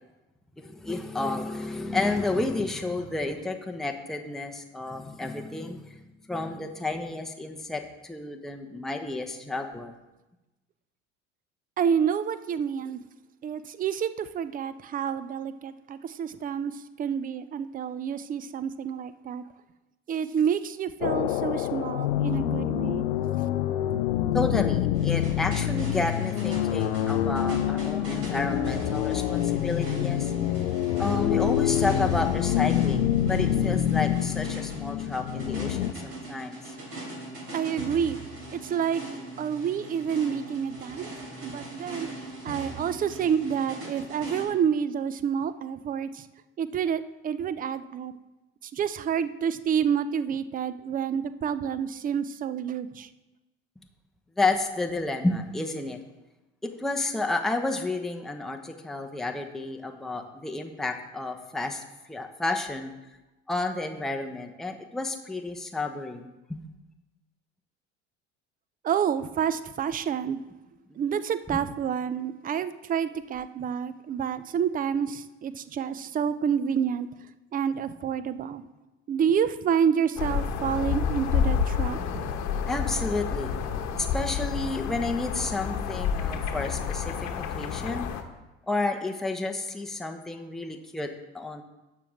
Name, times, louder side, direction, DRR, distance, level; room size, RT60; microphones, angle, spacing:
voice 1, 0.6-9.9 24.3-30.7 31.0-36.7 54.4-56.0 56.6-61.8 62.1-62.9 63.5-66.7 70.9-71.0 71.5-71.6 82.7-83.5 84.0-88.1 88.7-91.1 91.3-91.6, left 2 dB, ahead, 3 dB, 0.9 m, -31 dB
voice 2, 11.8-13.0 13.4-16.7 17.0-19.4 20.1-23.1 37.5-38.2 38.5-39.0 39.4-41.1 41.4-42.1 42.4-46.2 46.6-48.1 48.6-53.1 68.8-70.4 71.0-77.1 77.5-78.6 79.1-82.3, right 8 dB, 25° right, 14 dB, 0.5 m, -28 dB
sound 1, 21.0-35.9, left 11 dB, 70° left, 0.6 m, -26 dB
sound 2, 24.9-44.5, right 2 dB, 40° right, 3.5 m, -40 dB
sound 3, 80.2-88.2, left 7 dB, 50° left, 1.1 m, -29 dB
12.0 x 7.2 x 3.6 m, 1.0 s
figure-of-eight pair, 65°, 35 cm